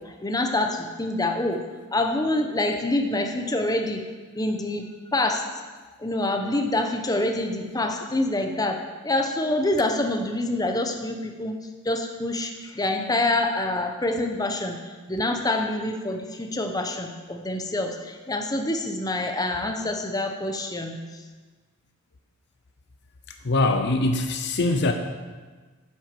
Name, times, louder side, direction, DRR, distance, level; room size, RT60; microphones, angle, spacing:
voice 1, 0.0-1.6 1.9-4.0 4.3-5.6 6.0-8.8 9.0-11.6 11.8-21.2, left 2 dB, 15° left, 4 dB, 0.8 m, -26 dB
voice 2, 23.4-24.9, left 2 dB, 50° left, 6 dB, 0.6 m, -22 dB
9.1 x 6.3 x 6.9 m, 1.4 s
head